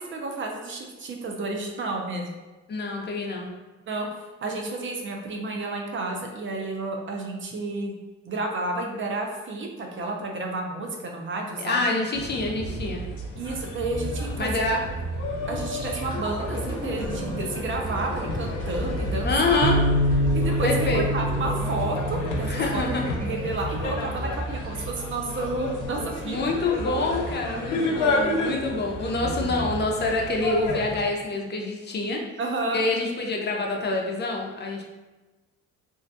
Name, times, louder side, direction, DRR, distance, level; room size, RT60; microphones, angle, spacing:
voice 1, 0.0-2.3 3.9-4.1 4.4-7.9 8.3-11.9 13.4-14.8 15.5-19.7 20.3-26.7 27.0-27.3 28.0-28.1 32.4-32.8, right 2 dB, 40° right, 2 dB, 0.4 m, -31 dB
voice 2, 2.7-3.5 11.6-13.0 14.4-14.8 19.2-19.8 20.6-21.1 22.5-23.2 26.2-32.2 32.7-34.8, left 2 dB, 35° left, 1 dB, 0.4 m, -26 dB
sound 1, 12.1-31.0, left 1 dB, 85° left, 0.5 m, -31 dB
sound 2, 15.7-25.5 25.9-26.1, equal, 15° right, 0.9 m, -34 dB
Bass guitar, 19.6-24.0 24.7-25.9, equal, 90° right, 0.6 m, -28 dB
2.5 x 2.2 x 2.5 m, 1.2 s
cardioid pair, 90°, 30 cm